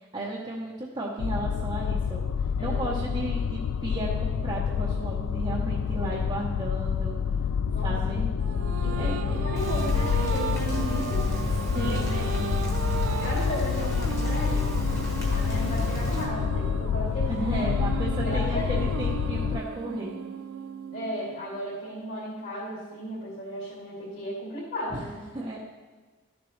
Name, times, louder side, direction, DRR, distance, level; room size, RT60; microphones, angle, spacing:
voice 1, 0.1-2.3 2.6-7.2 7.8-8.3 9.0-9.2 11.4-11.5 11.7-12.5 17.3-20.2 24.9-25.1 25.3-25.6, right 2 dB, 25° right, -6 dB, 0.9 m, -34 dB
sound 1, 1.2-19.6, left 7 dB, 90° left, 0.3 m, -28 dB
voice 2, 2.6-3.2 6.0-6.2 7.7-8.2 8.8-11.3 11.7-12.6 13.2-14.7 15.3-17.7 18.2-18.8 20.9-25.2, equal, 55° left, -8 dB, 2.6 m, -35 dB
sound 2, 8.4-22.0, right 6 dB, 75° right, 0.4 m, -36 dB
Rain, 9.6-16.2, left 1 dB, 15° left, 1.3 m, -33 dB
12.5 x 7.0 x 3.2 m, 1.4 s
head